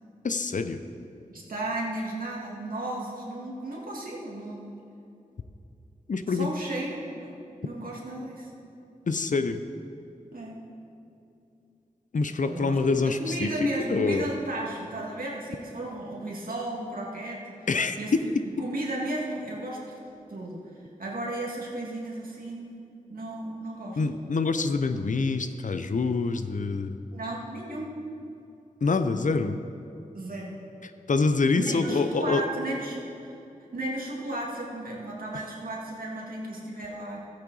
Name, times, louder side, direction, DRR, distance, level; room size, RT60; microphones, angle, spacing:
voice 1, 0.2-0.8 6.1-6.5 9.1-9.6 12.1-14.3 17.7-18.2 24.0-27.0 28.8-29.6 31.1-32.4, left 4 dB, 65° left, 9 dB, 0.6 m, -26 dB
voice 2, 1.3-4.8 6.3-7.3 7.6-8.5 10.3-10.6 12.3-17.7 18.0-20.0 20.3-20.6 21.0-22.8 23.1-24.0 27.1-28.0 30.1-30.5 31.6-33.3 33.7-37.3, right 1 dB, 85° right, -3 dB, 2.0 m, -34 dB
14.0 x 8.7 x 4.0 m, 2.7 s
cardioid pair, 40°, 14 cm